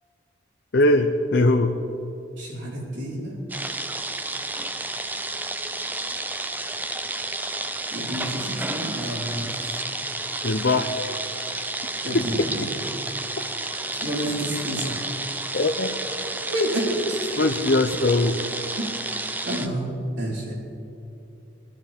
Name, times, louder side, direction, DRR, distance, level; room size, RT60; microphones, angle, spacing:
voice 1, 0.7-1.7 10.4-10.9 12.1-12.2 15.5-15.9 17.4-18.4, left 2 dB, 60° left, 4 dB, 0.6 m, -20 dB
voice 2, 2.4-3.4 7.9-9.8 12.0-12.7 13.9-15.0 16.5-17.3 18.8-18.9 19.4-20.5, right 1 dB, 70° right, -4 dB, 4.0 m, -29 dB
sound 1, 3.5-19.7, right 2 dB, 10° right, 0.4 m, -31 dB
22.0 x 12.0 x 3.5 m, 2.8 s
head